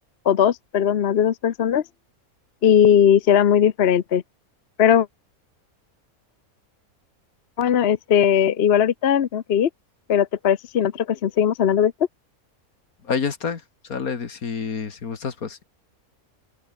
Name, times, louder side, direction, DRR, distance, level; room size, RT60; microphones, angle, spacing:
voice 1, 0.3-1.8 2.6-4.2 4.8-5.1 7.6-9.7 10.1-11.9, left 9 dB, 50° left, 0.9 m, -18 dB
voice 2, 13.0-15.6, left 6 dB, 75° left, 2.3 m, -28 dB
open air
omnidirectional pair, 1.5 m